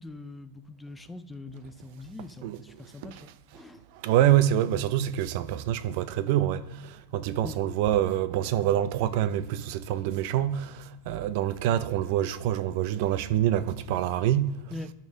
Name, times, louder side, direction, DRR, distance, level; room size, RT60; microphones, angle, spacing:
voice 1, 0.0-3.8 7.4-7.6 14.7-14.9, left 2 dB, 10° left, 0.4 m, -42 dB
voice 2, 3.9-14.7, right 12 dB, 55° right, 0.5 m, -26 dB
9.6 x 5.3 x 6.2 m
supercardioid pair, 140°, 0 cm